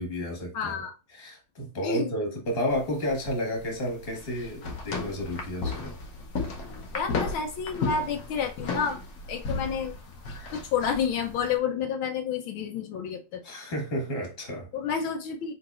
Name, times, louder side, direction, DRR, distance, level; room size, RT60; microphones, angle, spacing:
voice 1, 0.0-0.8 1.1-6.0 13.4-14.7, equal, 30° left, 1.7 m, -31 dB
voice 2, 0.5-0.9 1.8-2.1 6.9-9.0 9.3-10.0 10.5-13.4 14.7-15.5, left 6 dB, 80° left, 1.6 m, -29 dB
sound 1, 2.7-11.6, left 4 dB, 55° left, 1.2 m, -35 dB
4.8 x 3.9 x 2.4 m
omnidirectional pair, 2.2 m